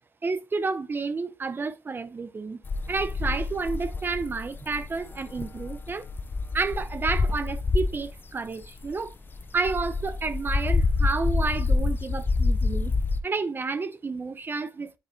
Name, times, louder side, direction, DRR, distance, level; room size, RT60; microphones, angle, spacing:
voice 1, 0.2-2.6 2.9-6.0 6.5-9.1 9.5-12.9 13.2-15.0, right 4 dB, 35° right, 0.7 m, -30 dB
sound 1, 2.6-8.1 8.6-13.2, left 3 dB, 30° left, 0.4 m, -27 dB
10.0 x 3.9 x 2.6 m
cardioid pair, 75°, 6 cm